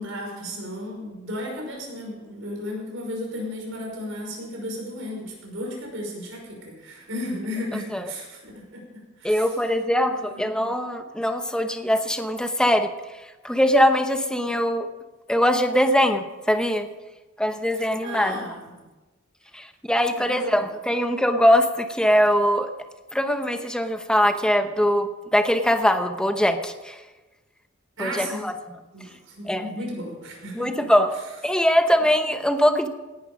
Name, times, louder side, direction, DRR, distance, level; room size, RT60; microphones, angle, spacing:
voice 1, 0.0-9.5 10.3-10.5 17.7-18.8 20.1-20.7 28.0-28.5 28.9-30.9, equal, 70° right, -1 dB, 5.8 m, -34 dB
voice 2, 7.7-8.1 9.2-12.9 13.4-14.9 15.3-16.9 17.4-18.4 19.5-22.7 23.1-27.0 28.0-28.8 29.4-29.7 30.5-32.9, equal, 5° left, 7 dB, 0.9 m, -22 dB
18.0 x 11.5 x 5.2 m, 1.1 s
head